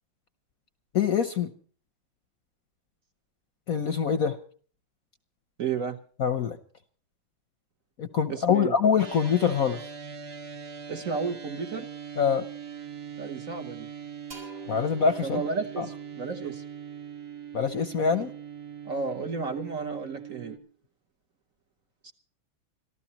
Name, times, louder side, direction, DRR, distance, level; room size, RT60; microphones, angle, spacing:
voice 1, 0.9-1.5 3.7-4.4 6.2-6.6 8.0-9.8 12.2-12.5 14.7-15.4 15.8-15.9 17.5-18.3, left 7 dB, 55° left, 10 dB, 1.0 m, -24 dB
voice 2, 5.6-6.0 8.3-8.7 10.9-11.8 13.2-13.9 15.2-16.6 18.8-20.6 22.0-22.1, right 5 dB, 45° right, 6 dB, 1.3 m, -32 dB
sound 1, 9.0-20.6, right 7 dB, 80° right, 3.2 m, -41 dB
sound 2, 14.3-17.9, equal, 65° right, 5.6 m, -50 dB
26.5 x 13.5 x 2.9 m, 0.43 s
omnidirectional pair, 2.2 m